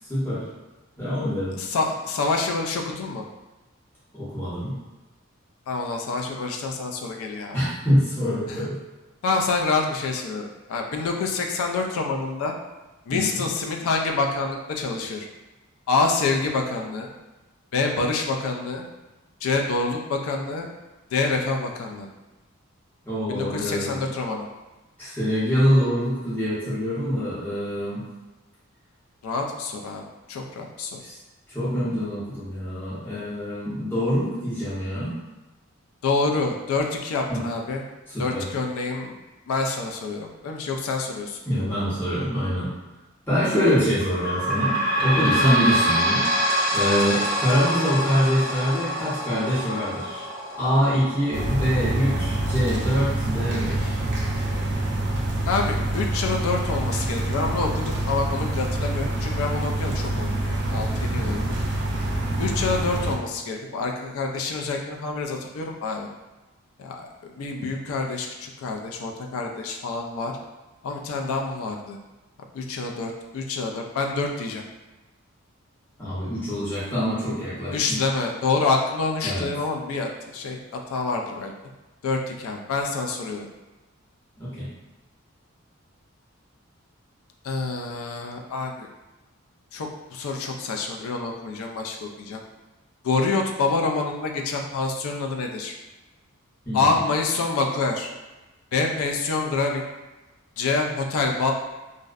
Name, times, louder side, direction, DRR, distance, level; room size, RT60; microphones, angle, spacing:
voice 1, 0.1-0.4 1.0-1.5 4.1-4.8 7.5-8.8 13.1-13.4 23.0-24.0 25.0-28.0 31.0-31.2 31.5-35.1 37.3-37.4 38.1-38.4 41.5-42.7 43.3-50.3 50.6-54.0 61.1-61.5 76.0-78.0 79.2-79.5 84.4-84.7 96.7-96.9, equal, 10° left, -11 dB, 0.6 m, -25 dB
voice 2, 1.6-3.2 5.7-7.6 8.5-8.6 9.2-12.5 13.1-15.3 15.9-17.1 17.7-18.8 19.4-20.7 21.1-22.1 23.3-24.5 29.2-30.0 30.3-31.0 36.0-37.8 38.2-39.2 39.5-41.4 55.4-61.4 62.4-66.1 66.8-70.3 70.8-72.0 72.5-74.6 77.7-81.5 82.0-83.5 87.4-88.9 89.7-92.4 93.0-95.7 96.7-98.1 98.7-99.8 100.6-101.5, left 3 dB, 80° left, 2 dB, 0.3 m, -27 dB
sound 1, 44.0-57.2 57.7-57.8 58.1-58.2 59.0-59.1, equal, 55° left, 0.7 m, -27 dB
sound 2, 51.3-63.1, right 1 dB, 50° right, 0.4 m, -26 dB
2.5 x 2.0 x 2.4 m, 1.1 s
head